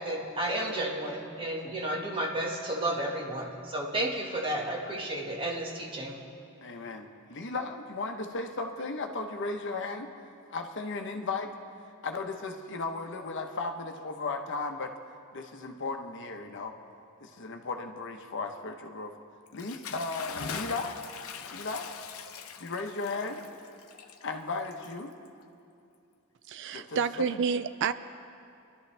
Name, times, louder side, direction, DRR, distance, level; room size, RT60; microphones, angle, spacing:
voice 1, 0.0-6.2, right 1 dB, 25° right, -1 dB, 1.7 m, -32 dB
voice 2, 6.6-10.1 10.5-11.5 12.0-14.9 15.3-16.7 17.2-19.1 19.5-21.0 21.5-21.9 22.6-23.4 24.2-25.1 26.7-27.4, left 3 dB, 60° left, 4 dB, 1.0 m, -35 dB
Bathtub (filling or washing) / Splash splatter, 19.5-25.4, left 6 dB, 85° left, 0.8 m, -42 dB
voice 3, 26.5-27.9, right 6 dB, 60° right, 13 dB, 0.3 m, -29 dB
25.5 x 12.0 x 3.4 m, 2.6 s
head